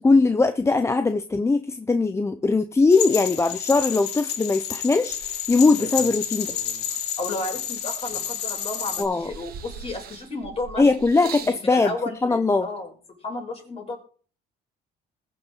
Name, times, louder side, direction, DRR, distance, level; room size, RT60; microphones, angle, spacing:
voice 1, 0.0-6.5 9.0-9.3 10.8-11.9 12.2-12.7, left 3 dB, 15° left, 0.6 m, -20 dB
sound 1, 2.9-9.0, left 9 dB, 85° left, 2.1 m, -30 dB
sound 2, 5.1-6.9 7.5-8.6 9.0-11.6 12.5-12.6, right 7 dB, 65° right, 1.6 m, -42 dB
voice 2, 6.9-10.9 11.4-14.0, left 2 dB, 35° left, 5.2 m, -33 dB
20.5 x 6.9 x 3.9 m
cardioid pair, 110°, 17 cm